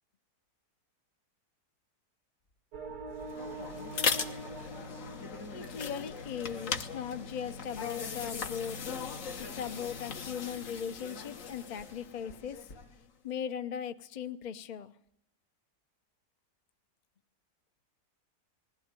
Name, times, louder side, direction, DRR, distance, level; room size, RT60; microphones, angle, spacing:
sound 1, 2.7-6.3, right 2 dB, 90° right, 2.2 m, -44 dB
sound 2, 3.2-13.0, left 5 dB, 55° left, 1.5 m, -38 dB
voice 1, 5.5-8.8 9.5-12.7 13.2-14.9, left 8 dB, 35° left, 10 dB, 0.8 m, -38 dB
20.5 x 15.0 x 9.6 m, 0.75 s
omnidirectional pair, 1.7 m